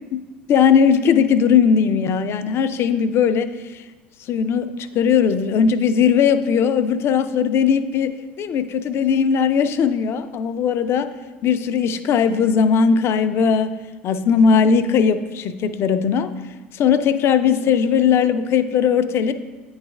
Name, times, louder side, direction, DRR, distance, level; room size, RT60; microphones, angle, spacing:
voice 1, 0.5-3.8 4.3-11.1 11.4-13.7 14.0-16.3 16.7-19.3, left 6 dB, 45° left, 11 dB, 0.4 m, -18 dB
9.3 x 3.2 x 3.5 m, 1.2 s
hypercardioid pair, 75°, 6 cm